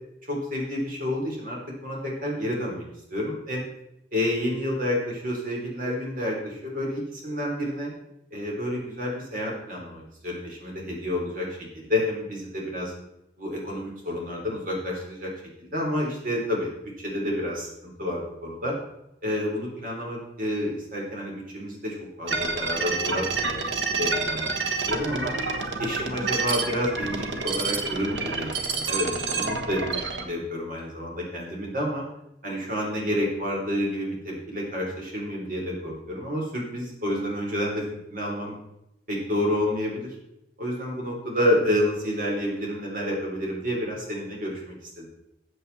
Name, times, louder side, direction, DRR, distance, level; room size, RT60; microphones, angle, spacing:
voice 1, 0.3-3.6 4.1-7.9 8.3-11.5 11.7-12.9 13.4-15.3 15.6-16.7 17.0-18.7 19.2-23.6 23.9-24.6 24.9-25.3 25.8-32.0 32.4-38.5 39.1-40.1 40.6-45.1, left 1 dB, 50° right, -1 dB, 3.9 m, -29 dB
sound 1, 22.3-30.2, right 4 dB, 90° right, 1.3 m, -28 dB
14.0 x 8.0 x 4.2 m, 0.84 s
head